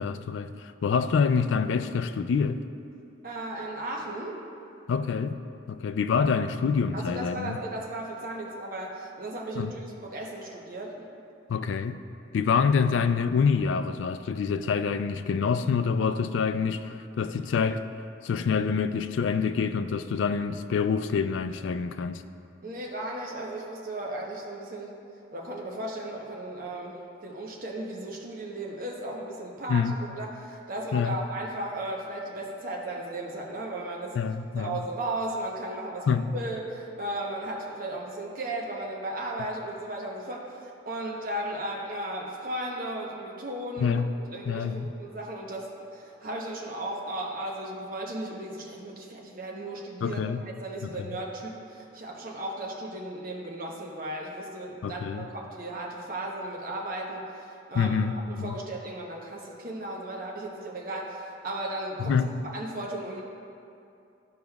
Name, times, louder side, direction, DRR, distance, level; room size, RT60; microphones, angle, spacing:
voice 1, 0.0-2.6 4.9-5.4 5.7-7.6 9.6-9.7 11.5-12.0 12.3-17.9 18.2-22.2 29.7-30.0 30.9-31.2 34.2-34.8 36.1-36.3 43.8-44.1 44.5-44.9 50.0-50.4 50.8-50.9 54.8-55.3 57.8-58.6 62.0-62.3, left 6 dB, 90° left, 11 dB, 0.3 m, -26 dB
voice 2, 3.2-4.4 6.9-11.1 22.6-25.0 25.3-34.2 34.5-44.0 44.3-58.0 58.3-62.2 62.5-63.2, right 1 dB, 50° right, -1 dB, 0.9 m, -35 dB
12.5 x 5.0 x 2.3 m, 2.6 s
head